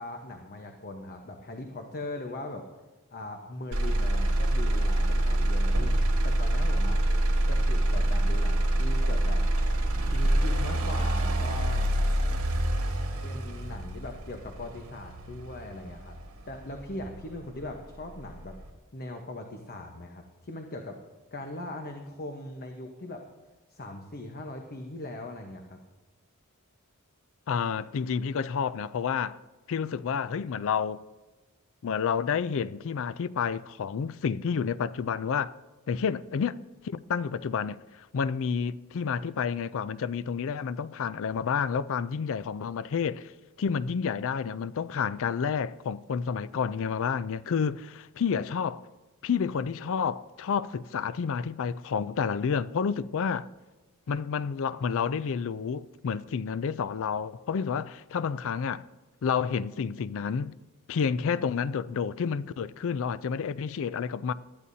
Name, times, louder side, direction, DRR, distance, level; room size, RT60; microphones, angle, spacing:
voice 1, 0.0-2.6 3.1-5.9 6.2-7.0 7.5-9.4 10.0-11.9 13.2-16.2 16.5-18.6 18.9-21.0 21.3-23.2 23.7-25.8, left 2 dB, 45° left, 1.1 m, -40 dB
Motor vehicle (road), 3.7-17.7 18.2-18.7, right 1 dB, 70° right, 2.0 m, -26 dB
voice 2, 27.5-29.4 29.7-31.0 31.8-35.5 35.9-36.6 36.8-43.3 43.6-48.8 49.2-53.5 54.1-58.8 59.2-60.6 60.9-64.3, left 6 dB, 65° left, 0.4 m, -30 dB
19.5 x 13.0 x 2.8 m
head